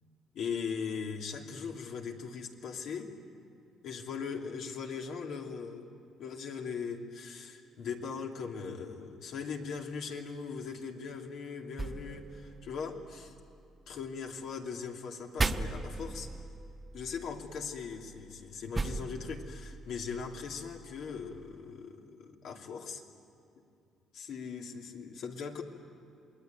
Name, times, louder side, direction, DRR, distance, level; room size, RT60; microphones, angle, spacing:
voice 1, 0.3-3.1 3.8-5.9 6.2-13.3 13.9-16.3 16.9-23.0 24.1-25.6, left 5 dB, 70° left, 1 dB, 2.7 m, -39 dB
sound 1, 11.8-13.9 15.4-21.5, right 3 dB, 20° right, 1.0 m, -39 dB
28.0 x 21.0 x 9.2 m, 2.5 s
cardioid pair, 110°, 0 cm